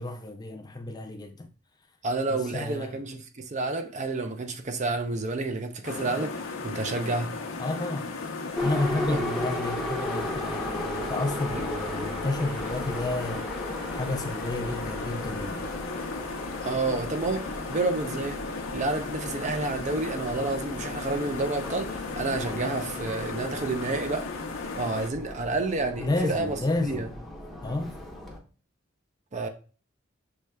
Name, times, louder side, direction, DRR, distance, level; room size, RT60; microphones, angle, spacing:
voice 1, 0.0-1.5 2.3-3.0 7.6-8.1 8.6-13.5 13.9-15.7 26.0-27.1 27.6-27.9, left 2 dB, 20° left, 0.4 m, -31 dB
voice 2, 2.0-7.3 9.1-9.3 11.5-11.7 16.6-18.4 18.7-24.3 24.8-27.1 29.3-29.5, right 3 dB, 35° right, 0.5 m, -30 dB
sound 1, 5.8-25.1, left 3 dB, 90° left, 0.7 m, -36 dB
Subway metro underground, 8.6-28.4, left 1 dB, ahead, 0.8 m, -37 dB
6.1 x 3.2 x 2.2 m
head